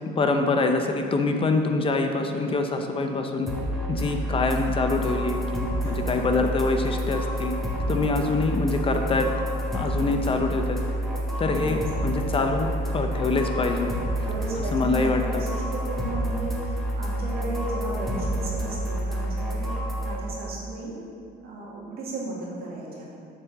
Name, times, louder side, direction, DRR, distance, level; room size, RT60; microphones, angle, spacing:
voice 1, 0.2-3.5 3.9-7.5 7.9-9.3 9.7-10.8 11.4-13.9 14.7-15.4, left 3 dB, 30° left, 5 dB, 0.6 m, -25 dB
sound 1, 3.5-20.2, right 1 dB, ahead, 1.7 m, -29 dB
voice 2, 5.8-6.1 7.9-8.1 9.9-10.3 11.5-11.8 14.2-19.7 20.0-20.9 21.4-23.1, right 2 dB, 65° right, -4 dB, 2.3 m, -35 dB
8.4 x 4.4 x 6.8 m, 2.5 s
cardioid pair, 110°, 17 cm